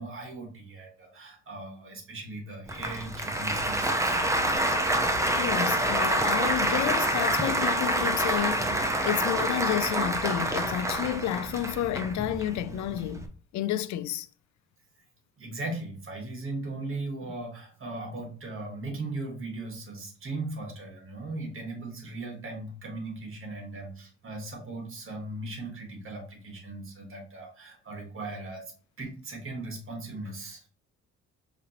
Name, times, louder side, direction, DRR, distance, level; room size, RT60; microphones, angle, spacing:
voice 1, 0.0-4.2 15.4-28.7 29.0-30.6, right 2 dB, 45° right, 1.5 m, -38 dB
Applause, 2.7-13.3, right 1 dB, 10° right, 0.6 m, -27 dB
voice 2, 5.4-13.3 13.5-14.3, left 12 dB, 70° left, 0.4 m, -30 dB
5.0 x 2.8 x 3.0 m
cardioid pair, 90°, 30 cm